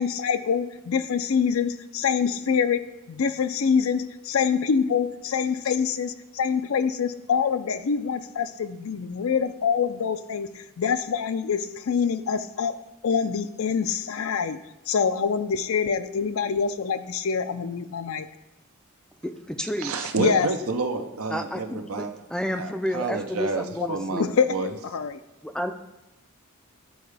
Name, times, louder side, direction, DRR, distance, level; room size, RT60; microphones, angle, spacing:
voice 1, 0.0-12.8 13.0-14.6 14.9-18.3 20.2-20.5 23.8-25.2, left 6 dB, 70° left, 11 dB, 0.4 m, -25 dB
voice 2, 19.2-20.1 21.3-24.3 25.4-25.7, equal, 5° left, 7 dB, 0.4 m, -31 dB
voice 3, 19.8-22.1 22.5-24.7, right 4 dB, 80° right, 6 dB, 0.7 m, -29 dB
11.5 x 4.6 x 3.4 m, 0.97 s
head